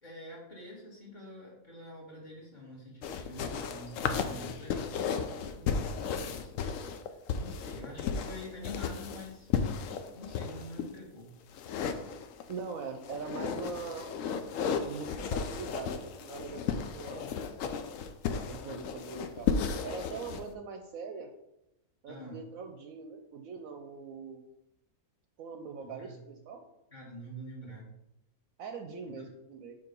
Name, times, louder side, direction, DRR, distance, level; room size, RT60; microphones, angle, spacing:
voice 1, 0.0-5.2 5.5-6.8 7.1-9.5 10.1-11.3 17.1-17.8 22.1-22.4 25.8-26.2 26.9-27.9 29.1-29.3, left 1 dB, 30° left, -5 dB, 2.0 m, -47 dB
sound 1, 3.0-10.9 11.5-12.6 13.0-20.4, left 6 dB, 65° left, 0.9 m, -34 dB
voice 2, 12.5-14.1 14.8-17.3 18.4-19.5 19.8-21.3 22.0-24.4 25.4-26.6 28.6-29.8, right 5 dB, 70° right, 5 dB, 1.0 m, -42 dB
6.7 x 2.9 x 5.3 m, 0.86 s
omnidirectional pair, 1.6 m